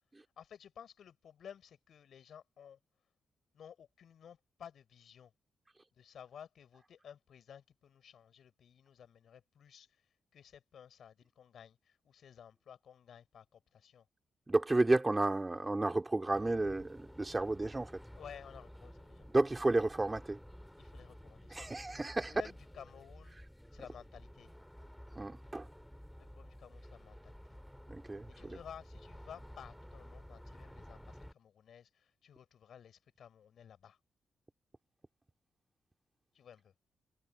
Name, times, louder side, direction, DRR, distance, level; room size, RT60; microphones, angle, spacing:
voice 1, 0.4-2.8 3.5-5.3 6.0-9.9 10.3-14.0 18.2-19.3 20.8-23.4 23.7-24.5 26.2-27.6 28.4-34.0 36.3-36.7, left 8 dB, 70° left, 5.8 m, -55 dB
voice 2, 14.5-18.0 19.3-20.4 21.5-22.3 25.1-25.7 27.9-28.6, right 2 dB, 25° right, 2.9 m, -32 dB
sound 1, 16.3-31.3, equal, 5° left, 3.7 m, -53 dB
supercardioid pair, 50°, 0 cm